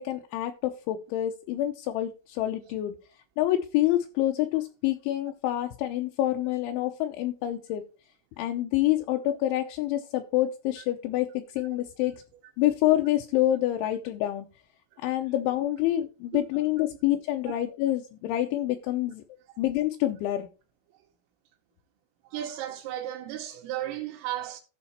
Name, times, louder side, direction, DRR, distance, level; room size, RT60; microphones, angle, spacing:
voice 1, 0.0-3.0 3.4-7.8 8.4-12.2 12.6-14.5 15.0-19.2 19.6-20.5, left 14 dB, 80° left, 2.8 m, -27 dB
voice 2, 22.3-24.6, right 13 dB, 85° right, 3.5 m, -34 dB
14.0 x 5.0 x 4.3 m
omnidirectional pair, 5.8 m